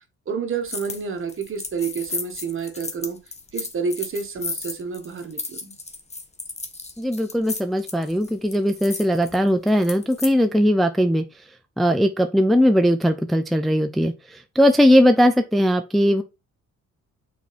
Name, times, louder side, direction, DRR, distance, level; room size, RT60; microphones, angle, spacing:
voice 1, 0.3-3.2 3.5-5.7, right 5 dB, 45° right, 1.5 m, -29 dB
sound 1, 0.7-1.0 1.3-10.3, left 3 dB, 20° left, 1.1 m, -34 dB
voice 2, 7.0-11.2 11.8-14.1 14.6-16.2, equal, ahead, 0.5 m, -19 dB
6.0 x 4.3 x 4.2 m
cardioid pair, 90°, 30 cm